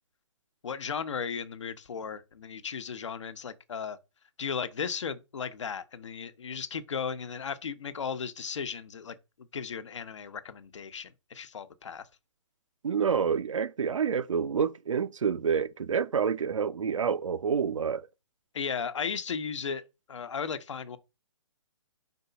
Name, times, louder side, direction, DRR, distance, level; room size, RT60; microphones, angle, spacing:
voice 1, 0.6-4.0 4.4-9.2 9.5-12.1 18.5-19.8 20.1-21.0, left 6 dB, 70° left, 1.0 m, -35 dB
voice 2, 12.8-18.1, right 6 dB, 85° right, 0.7 m, -28 dB
4.5 x 4.1 x 5.7 m
hypercardioid pair, 160°, 16 cm